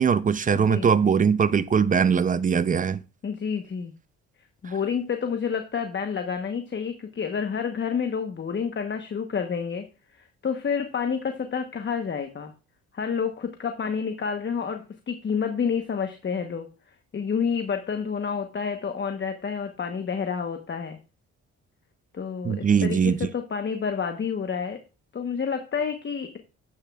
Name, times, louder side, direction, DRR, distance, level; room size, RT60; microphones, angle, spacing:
voice 1, 0.0-3.0 22.4-23.2, right 6 dB, 25° right, 0.5 m, -21 dB
voice 2, 0.5-0.9 3.2-3.9 4.6-9.8 10.4-12.5 12.9-16.7 17.1-21.0 22.1-24.8 25.1-26.4, left 6 dB, 40° left, 1.0 m, -29 dB
10.0 x 8.4 x 2.3 m
cardioid pair, 90°, 30 cm